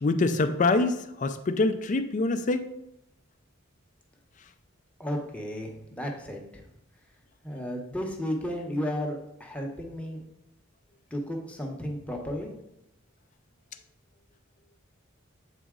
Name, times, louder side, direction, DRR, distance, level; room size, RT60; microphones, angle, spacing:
voice 1, 0.0-2.7, left 3 dB, 40° left, 10 dB, 0.4 m, -25 dB
voice 2, 5.0-6.6 7.4-10.2 11.1-12.5, equal, 5° left, 1 dB, 0.8 m, -33 dB
8.2 x 4.0 x 3.7 m, 0.84 s
head